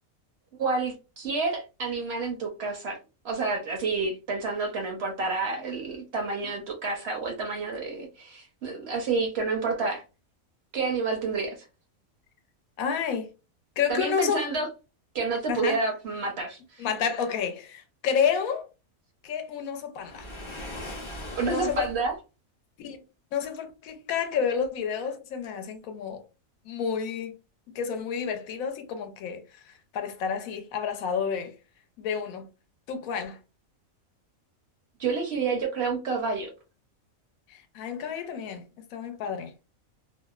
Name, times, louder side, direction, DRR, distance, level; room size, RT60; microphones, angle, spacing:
voice 1, 0.5-3.0 3.2-10.0 10.7-11.6 13.9-14.7 15.1-16.9 21.4-22.1 35.0-36.5, right 4 dB, 60° right, 0.7 m, -29 dB
voice 2, 12.8-13.3 13.8-14.5 15.5-15.8 16.8-18.7 19.2-20.3 21.4-21.9 22.8-23.0 23.3-26.2 26.7-27.3 27.7-29.4 29.9-31.5 32.0-32.5 32.9-33.4 37.5-38.6 38.9-39.5, left 7 dB, 80° left, 1.0 m, -30 dB
Waves surf, 20.0-22.1, left 1 dB, 35° left, 0.5 m, -39 dB
2.7 x 2.0 x 2.3 m
omnidirectional pair, 1.5 m